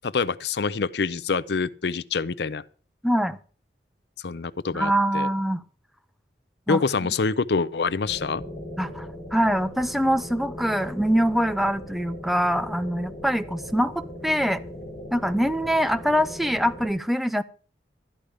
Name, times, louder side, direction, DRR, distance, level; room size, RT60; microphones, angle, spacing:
voice 1, 0.0-2.6 4.2-5.3 6.7-8.4, left 4 dB, 70° left, 0.5 m, -26 dB
voice 2, 3.0-3.4 4.7-5.6 6.7-6.8 8.8-14.6 15.1-17.4, equal, ahead, 0.5 m, -24 dB
sound 1, 8.0-16.9, equal, 40° left, 6.9 m, -39 dB
13.0 x 10.0 x 5.0 m
head